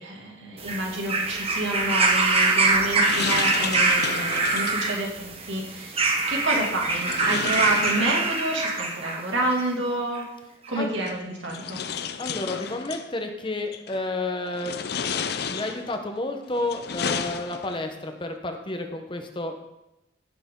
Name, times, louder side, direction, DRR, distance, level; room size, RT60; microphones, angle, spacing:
voice 1, 0.0-6.0 6.3-10.2 10.7-11.8, right 1 dB, 85° right, -1 dB, 2.6 m, -29 dB
sound 1, 0.6-9.2 10.2-10.3, right 3 dB, 30° right, 1.2 m, -24 dB
sound 2, 2.4-4.9 6.9-8.6 9.9-10.0 11.0-13.1 13.7-14.1 14.5-16.0 16.5-17.9, left 7 dB, 60° left, 0.6 m, -33 dB
voice 2, 10.7-11.1 12.2-14.8 15.5-19.5, left 2 dB, 25° left, 5 dB, 1.0 m, -31 dB
15.5 x 6.9 x 3.8 m, 0.91 s
head